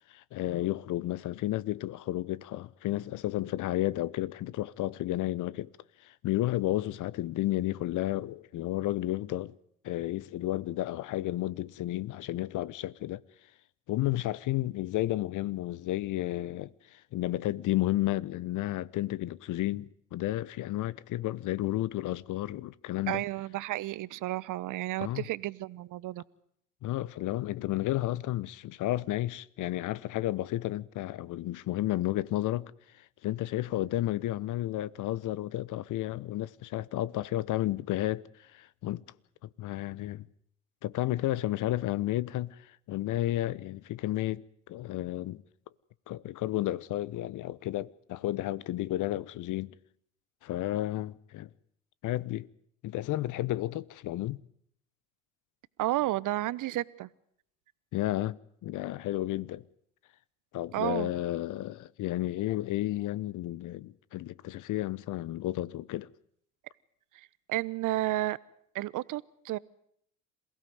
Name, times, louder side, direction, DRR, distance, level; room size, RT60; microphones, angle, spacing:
voice 1, 0.1-5.7 6.0-9.5 9.8-13.2 13.9-23.2 25.0-25.2 26.8-32.7 33.2-39.0 39.4-40.3 40.8-45.4 46.1-49.7 50.4-51.5 52.0-52.5 52.8-54.4 57.9-59.6 60.5-66.1, left 15 dB, 50° left, 1.0 m, -32 dB
voice 2, 23.1-26.2 55.8-57.1 60.7-61.1 67.1-68.4 68.7-69.6, right 16 dB, 50° right, 1.0 m, -32 dB
27.5 x 16.5 x 9.5 m
hypercardioid pair, 70°, 40 cm